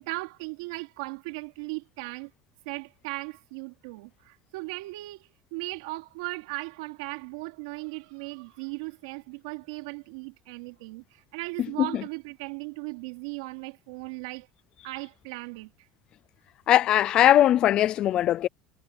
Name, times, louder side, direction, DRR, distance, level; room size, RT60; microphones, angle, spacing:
voice 1, 0.0-2.3 2.6-14.5 14.8-15.7, right 24 dB, 85° right, 3.2 m, -37 dB
voice 2, 16.7-18.5, left 12 dB, 35° left, 0.3 m, -20 dB
cardioid pair, 165°, 3 cm